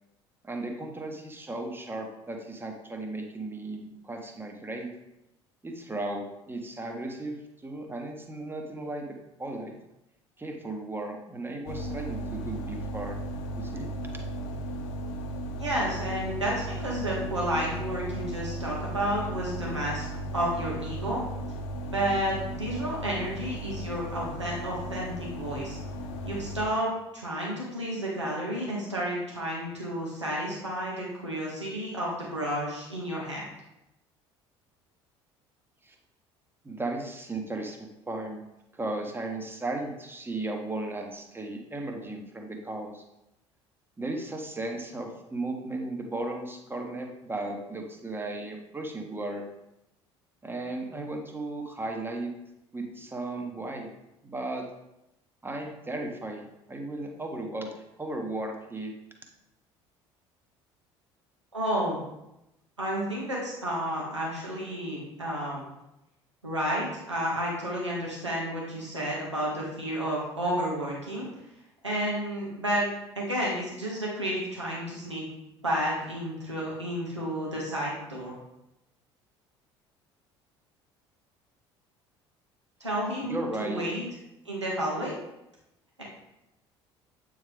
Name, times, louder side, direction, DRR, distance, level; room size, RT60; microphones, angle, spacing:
voice 1, 0.4-4.9 5.6-9.1 9.4-9.7 10.4-13.2 13.6-13.9 35.8-35.9 36.6-38.4 38.7-43.0 44.0-49.5 50.4-52.3 52.7-53.9 54.2-54.7 55.4-57.7 58.0-58.9 83.2-83.9, right 2 dB, 15° right, 3 dB, 1.2 m, -35 dB
sound 1, 11.7-26.7, right 1 dB, 60° left, 0.8 m, -36 dB
voice 2, 15.6-20.1 20.3-21.2 21.9-25.8 26.2-33.5 61.5-62.0 62.8-65.6 66.4-71.3 71.8-72.9 73.1-75.2 75.6-78.3 82.8-84.0 84.4-85.2 86.0-86.1, equal, 90° right, -5 dB, 1.6 m, -31 dB
8.5 x 3.7 x 3.5 m, 0.89 s
figure-of-eight pair, 60°, 15 cm